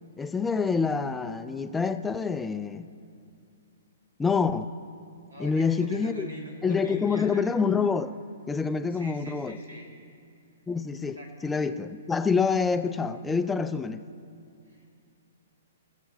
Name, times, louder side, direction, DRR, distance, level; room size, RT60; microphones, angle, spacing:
voice 1, 0.2-2.9 4.2-4.7 5.4-6.3 6.6-8.1 8.5-9.6 10.7-11.2 11.4-14.0, left 5 dB, 10° left, 10 dB, 0.4 m, -26 dB
voice 2, 5.3-7.4 8.9-9.9 11.1-11.3 14.6-14.9, right 1 dB, 85° right, -1 dB, 2.2 m, -44 dB
20.0 x 7.4 x 3.8 m, 2.5 s
figure-of-eight pair, 120°, 0 cm